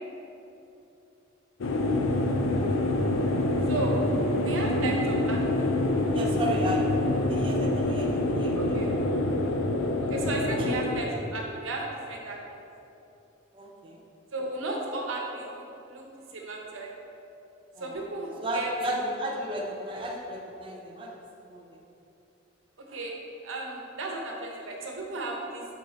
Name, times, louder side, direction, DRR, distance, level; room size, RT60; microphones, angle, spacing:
sound 1, 1.6-11.0, left 1 dB, 90° left, 0.5 m, -26 dB
voice 1, 4.4-5.7 8.5-8.9 9.3-9.5 10.0-12.6 14.3-15.6 15.9-16.0 16.3-16.9 17.8-18.7 22.9-23.2 23.4-25.6, right 2 dB, 90° right, -1 dB, 1.1 m, -34 dB
voice 2, 6.1-9.0 9.3-9.4 10.6-10.7 13.5-14.0 17.8-18.0 18.4-21.1 21.5-21.8, right 1 dB, 25° right, -1 dB, 0.5 m, -34 dB
8.3 x 3.9 x 3.9 m, 2.9 s
head